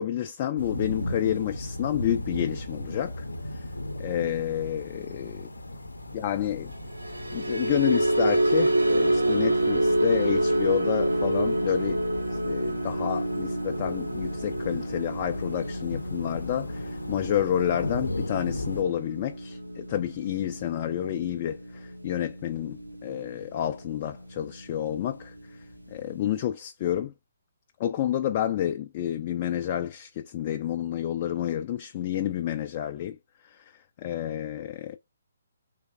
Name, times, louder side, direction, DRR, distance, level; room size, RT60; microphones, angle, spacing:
voice 1, 0.0-3.2 3.5-3.6 4.0-5.4 6.1-6.7 7.3-25.3 25.9-27.1 27.8-33.2 33.4-35.0, left 11 dB, 35° left, 0.3 m, -29 dB
sound 1, 0.6-18.8, left 1 dB, 80° left, 0.6 m, -37 dB
sound 2, 6.9-23.3 23.6-23.9 24.3-24.5, right 1 dB, 85° right, 0.8 m, -28 dB
3.3 x 3.2 x 2.5 m
figure-of-eight pair, 135°, 0 cm